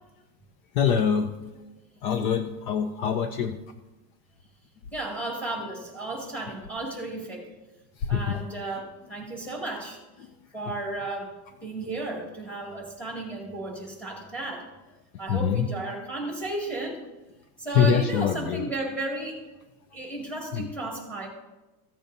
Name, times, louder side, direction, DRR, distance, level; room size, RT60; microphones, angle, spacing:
voice 1, 0.8-1.3 2.0-3.6 8.1-8.4 15.3-15.7 17.7-18.7 20.5-20.7, left 7 dB, 55° left, 8 dB, 0.7 m, -24 dB
voice 2, 4.9-7.5 8.1-10.0 10.5-11.3 11.6-14.7 15.2-17.0 17.6-19.4 19.9-21.3, right 2 dB, 5° left, -2 dB, 2.2 m, -34 dB
15.0 x 8.8 x 2.7 m, 1.0 s
supercardioid pair, 160°, 48 cm